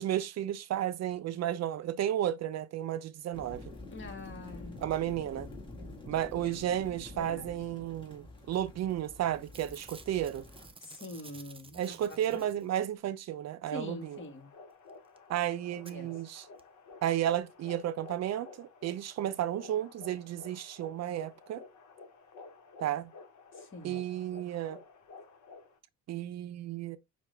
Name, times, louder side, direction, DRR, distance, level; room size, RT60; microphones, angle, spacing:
voice 1, 0.0-3.6 4.8-5.5 6.1-10.4 11.7-14.2 15.3-16.5 17.0-21.6 22.8-23.1 23.8-24.8 26.1-27.0, right 11 dB, 60° right, 0.5 m, -33 dB
sound 1, 3.3-10.7, left 2 dB, 15° left, 2.0 m, -48 dB
voice 2, 3.9-4.8 5.8-6.1 6.4-6.5 7.2-7.5 10.8-12.4 13.7-14.5 15.8-16.1 23.5-24.0, left 2 dB, 40° left, 1.5 m, -44 dB
Packing tape duct tape / Tearing, 8.9-9.1 9.4-13.0 14.9-15.0 15.2-15.3 15.9-16.0 16.6-16.7 16.9-17.0, right 4 dB, 20° right, 0.6 m, -53 dB
sound 2, 13.6-25.8, left 4 dB, 75° left, 1.1 m, -52 dB
5.8 x 2.4 x 3.3 m
cardioid pair, 90°, 30 cm